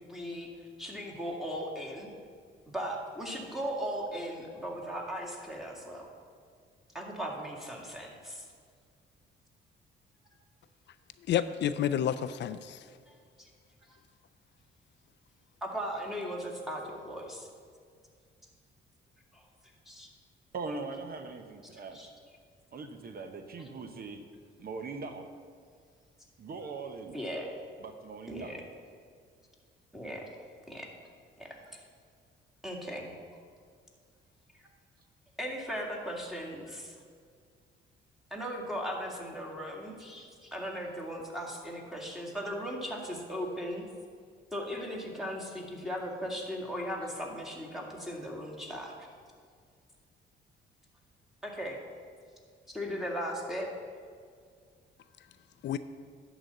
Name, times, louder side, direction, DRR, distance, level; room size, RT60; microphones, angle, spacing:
voice 1, 0.1-0.5 0.8-2.1 2.7-6.1 6.9-8.5 13.1-13.5 13.9-14.0 15.6-17.5 19.3-19.4 19.9-20.1 21.9-22.1 27.1-27.5 28.3-28.6 29.9-30.2 30.7-30.9 31.4-31.8 32.6-33.1 35.4-37.0 38.3-43.9 44.5-48.9 51.4-51.8 52.7-53.7, equal, ahead, -1 dB, 1.9 m, -37 dB
voice 2, 11.3-12.8 55.6-55.8, left 10 dB, 65° left, 12 dB, 0.4 m, -29 dB
voice 3, 20.5-22.0 22.7-24.2 24.6-25.3 26.4-27.2 27.8-28.6, right 4 dB, 50° right, 7 dB, 0.8 m, -41 dB
11.0 x 4.1 x 7.8 m, 2.1 s
cardioid pair, 90°, 20 cm